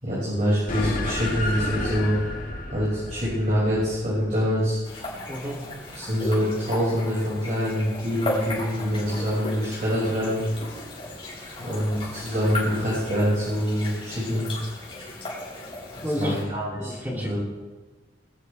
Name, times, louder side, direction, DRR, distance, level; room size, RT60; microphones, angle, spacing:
voice 1, 0.0-2.2 2.7-4.8 5.9-10.4 11.6-14.5 16.0-17.4, equal, 40° right, -8 dB, 5.8 m, -25 dB
sound 1, 0.7-5.4, left 1 dB, 45° left, 2.1 m, -32 dB
sound 2, 4.8-16.4, left 1 dB, 30° left, 5.7 m, -35 dB
voice 2, 5.3-5.6 16.0-16.4 16.8-17.4, equal, 10° right, -3 dB, 3.0 m, -30 dB
22.5 x 13.5 x 3.4 m, 1.3 s
head